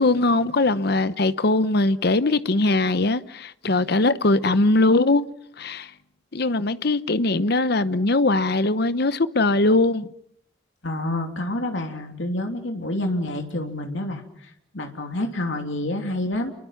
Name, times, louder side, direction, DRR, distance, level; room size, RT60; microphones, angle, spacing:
voice 1, 0.0-5.3 5.6-5.9 6.3-10.1, left 2 dB, 55° left, 0.9 m, -21 dB
voice 2, 10.8-16.5, left 1 dB, 70° left, 3.0 m, -28 dB
29.5 x 23.0 x 5.8 m
head